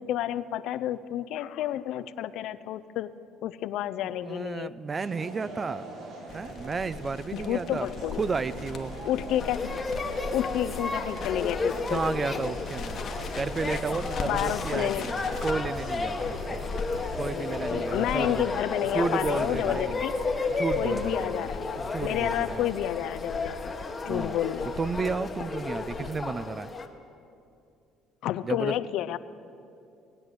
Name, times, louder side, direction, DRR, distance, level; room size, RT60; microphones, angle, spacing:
voice 1, 0.0-3.1 3.4-4.7 7.3-8.2 9.0-9.8 10.3-12.5 14.3-15.1 17.2-20.1 20.8-23.7 24.0-24.7 28.2-29.2, left 12 dB, 70° left, 14 dB, 0.5 m, -30 dB
voice 2, 4.2-5.9 6.3-7.9 8.2-9.0 11.9-13.0 13.3-16.6 17.2-18.5 18.9-20.0 20.6-21.4 21.8-22.7 24.1-24.4 24.8-26.7 28.4-28.7, right 4 dB, 25° right, 17 dB, 0.4 m, -32 dB
sound 1, 5.0-19.7, right 2 dB, 65° right, 2.9 m, -43 dB
Crackle, 6.3-26.1, left 4 dB, 45° left, 1.2 m, -40 dB
sound 2, 9.4-26.9, left 3 dB, 20° left, 1.1 m, -33 dB
18.0 x 9.7 x 7.7 m, 2.6 s
cardioid pair, 135°, 0 cm